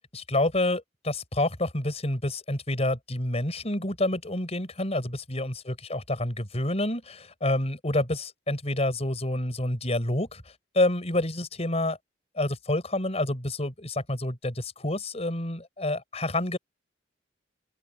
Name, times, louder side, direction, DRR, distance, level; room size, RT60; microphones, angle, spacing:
voice 1, 0.1-10.4 10.7-12.0 12.4-16.6, left 1 dB, 35° left, 5.5 m, -28 dB
open air
head